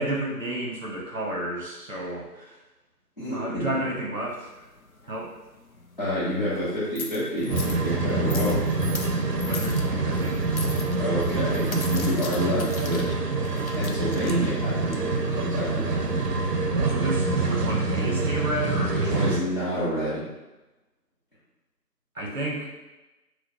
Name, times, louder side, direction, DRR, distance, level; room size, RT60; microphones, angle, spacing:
voice 1, 0.0-2.6 3.3-4.5 5.1-5.3 9.5-10.4 16.8-19.3 22.1-22.7, right 1 dB, 55° right, -1 dB, 1.0 m, -31 dB
voice 2, 3.2-3.8 6.0-8.6 11.0-13.0 13.7-16.3 19.1-20.2, equal, 35° left, -12 dB, 0.9 m, -29 dB
sound 1, 4.3-16.3, left 3 dB, 60° left, 0.5 m, -41 dB
sound 2, 7.5-19.4, right 3 dB, 75° right, 0.6 m, -26 dB
4.2 x 2.2 x 2.8 m, 1.0 s
figure-of-eight pair, 165°, 48 cm